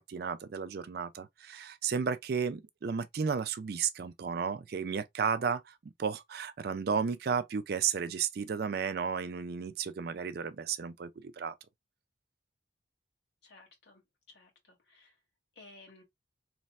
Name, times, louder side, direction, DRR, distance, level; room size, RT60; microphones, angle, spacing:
voice 1, 0.0-11.6, right 6 dB, 55° right, 0.4 m, -33 dB
voice 2, 13.4-14.0 14.3-15.1 15.5-16.0, left 2 dB, 60° left, 1.7 m, -56 dB
3.2 x 2.1 x 4.0 m
head